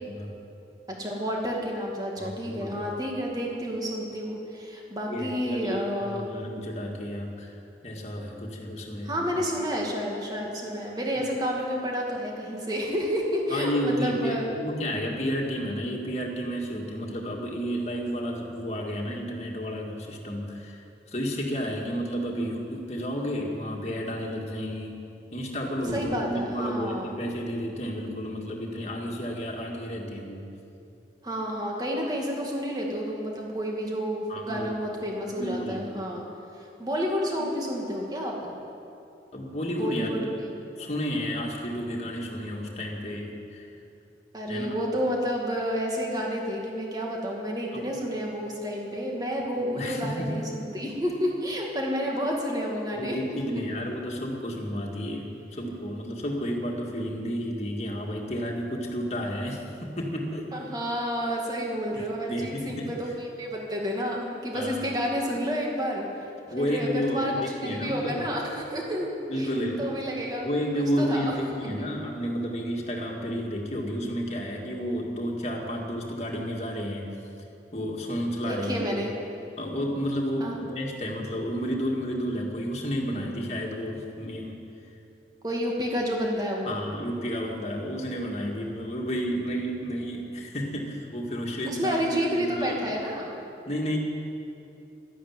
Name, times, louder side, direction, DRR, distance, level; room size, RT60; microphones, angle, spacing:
voice 1, 0.9-6.3 9.1-14.5 25.9-27.2 31.2-36.2 36.5-38.5 39.8-40.5 44.3-53.2 60.5-66.0 66.6-70.5 71.0-71.4 71.8-71.9 78.4-79.1 80.4-80.6 85.4-86.7 91.7-93.4, equal, 20° right, -1 dB, 2.2 m, -30 dB
voice 2, 2.2-2.9 5.1-7.6 7.8-9.1 13.5-25.0 25.3-30.4 34.3-34.8 35.4-35.9 39.3-40.3 40.8-43.7 44.5-44.8 47.7-47.9 49.6-50.4 52.9-60.5 61.9-62.9 64.5-64.9 66.5-68.3 69.3-69.8 70.4-77.2 77.7-79.1 79.6-84.7 86.7-92.8 93.7-94.0, equal, 40° left, -1 dB, 2.1 m, -31 dB
12.5 x 12.0 x 9.0 m, 2.7 s
head